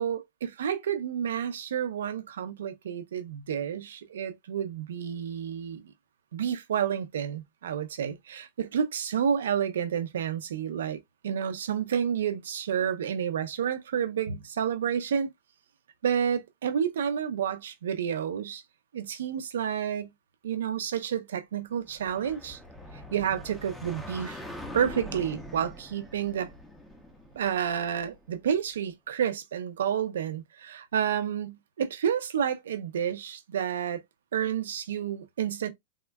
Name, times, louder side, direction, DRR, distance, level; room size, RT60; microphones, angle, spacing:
voice 1, 0.0-5.9 6.3-11.0 11.2-15.3 16.0-18.6 18.9-20.1 20.4-22.6 23.1-24.4 24.7-26.5 27.3-34.0 34.3-35.7, right 8 dB, 85° right, 0.6 m, -30 dB
sound 1, 21.8-28.4, left 1 dB, ahead, 0.7 m, -43 dB
3.6 x 2.1 x 2.3 m
hypercardioid pair, 130°, 0 cm